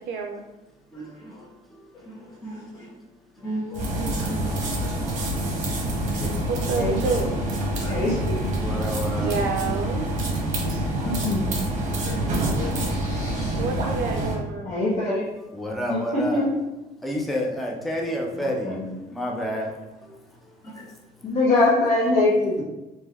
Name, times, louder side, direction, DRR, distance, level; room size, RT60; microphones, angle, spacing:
voice 1, 0.1-0.4 6.5-7.3 9.2-10.1 13.5-14.7, right 5 dB, 70° right, 1 dB, 0.4 m, -28 dB
voice 2, 3.4-4.4 6.2-6.4 7.8-8.0 8.8-8.9 10.6-11.3 12.0-13.8, equal, 20° left, -10 dB, 1.3 m, -36 dB
sound 1, 3.7-14.4, right 1 dB, 45° right, 0.8 m, -26 dB
voice 3, 6.7-7.5 7.9-8.5 11.0-11.4 14.6-15.3 16.1-16.4 18.4-19.0 21.2-22.6, left 2 dB, 45° left, -6 dB, 0.7 m, -23 dB
voice 4, 8.6-9.4 15.5-16.4 17.0-18.8 19.1-19.7 20.0-20.2, equal, ahead, -1 dB, 0.4 m, -29 dB
3.1 x 2.7 x 2.3 m, 1.0 s
cardioid pair, 110°, 17 cm